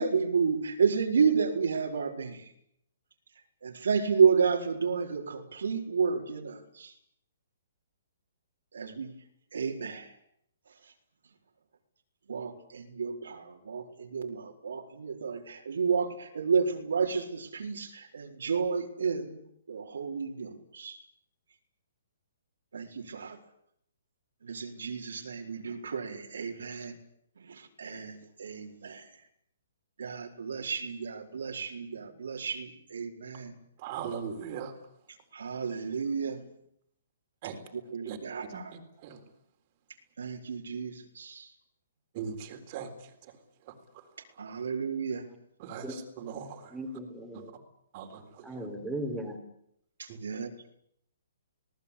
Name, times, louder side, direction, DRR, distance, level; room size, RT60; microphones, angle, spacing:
voice 1, 0.0-2.4 3.6-6.9 8.7-9.1 9.5-10.1 12.3-19.4 19.7-21.0 22.7-23.4 24.4-26.9 27.4-29.1 30.0-33.5 35.3-36.5 37.7-38.7 40.2-41.5 44.4-45.3 50.2-50.5, right 5 dB, 85° right, 2 dB, 4.4 m, -31 dB
voice 2, 33.8-34.7 37.4-37.6 38.1-38.2 38.5-39.2 42.1-42.9 44.5-44.6 45.6-46.7 47.3-47.4 47.9-48.5, right 7 dB, 30° right, 5 dB, 3.9 m, -39 dB
voice 3, 46.7-47.5 48.4-49.3, right 1 dB, ahead, -1 dB, 3.9 m, -37 dB
26.5 x 19.0 x 8.5 m, 0.72 s
hypercardioid pair, 170°, 0 cm